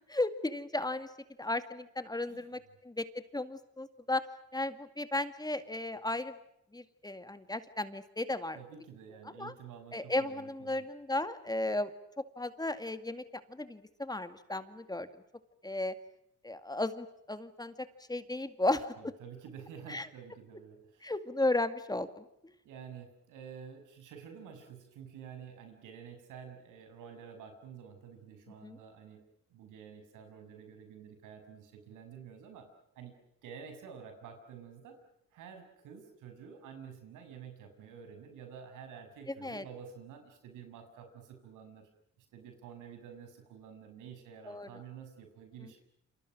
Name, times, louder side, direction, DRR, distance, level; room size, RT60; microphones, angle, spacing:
voice 1, 0.1-1.1 1.4-3.1 3.3-4.2 4.5-6.3 6.7-8.6 9.4-9.5 9.9-11.9 12.4-13.2 13.5-15.1 15.6-15.9 16.4-17.7 18.1-18.9 19.9-20.1 21.0-22.2 28.6-28.8 39.3-39.6 44.5-44.7, left 2 dB, 15° left, 10 dB, 2.1 m, -34 dB
voice 2, 8.5-10.9 18.9-21.1 22.6-32.7 32.9-33.2 33.4-35.0 35.3-41.9 42.2-45.8, right 7 dB, 90° right, 6 dB, 6.8 m, -50 dB
29.0 x 27.0 x 6.3 m, 0.78 s
cardioid pair, 90°, 30 cm